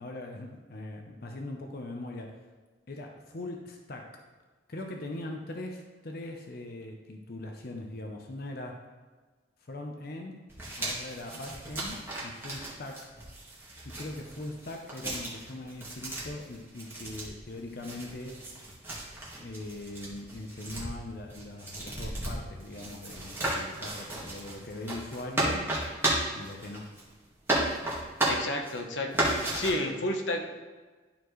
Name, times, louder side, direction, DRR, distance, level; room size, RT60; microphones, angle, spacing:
voice 1, 0.0-2.4 2.9-4.2 4.7-8.8 9.6-10.5 10.8-13.1 13.8-18.4 19.4-25.7 26.3-26.9, left 2 dB, 55° left, 2 dB, 0.7 m, -41 dB
sound 1, 10.5-27.2 27.5-28.8 29.1-29.7, right 1 dB, 15° right, 1.7 m, -34 dB
voice 2, 28.2-30.4, left 1 dB, 90° left, 3 dB, 1.0 m, -31 dB
12.0 x 4.3 x 3.1 m, 1.3 s
head